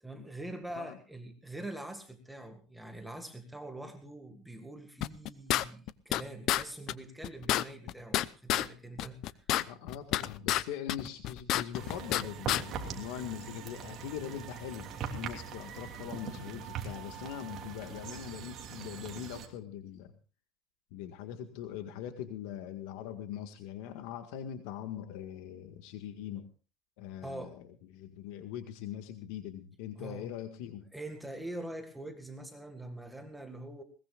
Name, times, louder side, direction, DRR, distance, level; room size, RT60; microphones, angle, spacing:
voice 1, 0.0-9.5 15.6-15.7 27.2-27.6 30.0-30.3 30.9-33.8, right 1 dB, 5° right, 5 dB, 1.9 m, -44 dB
sound 1, 5.0-6.2 6.5-6.6 6.9-7.0 7.2-8.7 9.0-10.6 10.9-12.2 12.5-12.6, left 13 dB, 55° left, 0.7 m, -29 dB
voice 2, 9.5-20.1 20.9-26.5 27.0-27.6 27.9-30.9, left 10 dB, 80° left, 7 dB, 1.8 m, -42 dB
sound 2, 11.7-19.5, right 7 dB, 40° right, 3.1 m, -42 dB
21.0 x 20.0 x 2.5 m, 0.33 s
cardioid pair, 140°, 0 cm